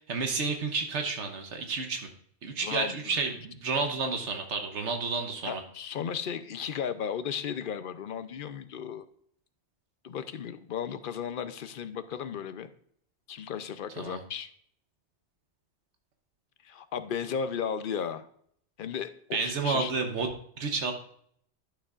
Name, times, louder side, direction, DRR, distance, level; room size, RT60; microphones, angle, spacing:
voice 1, 0.0-2.1 2.4-5.6 14.0-14.2 19.3-20.3 20.6-20.9, right 4 dB, 85° right, 4 dB, 1.3 m, -31 dB
voice 2, 2.6-3.2 5.4-9.0 10.0-12.7 13.3-14.5 16.6-18.3 18.8-19.9, left 7 dB, 55° left, 11 dB, 0.7 m, -35 dB
11.5 x 6.9 x 2.4 m, 0.63 s
omnidirectional pair, 1.2 m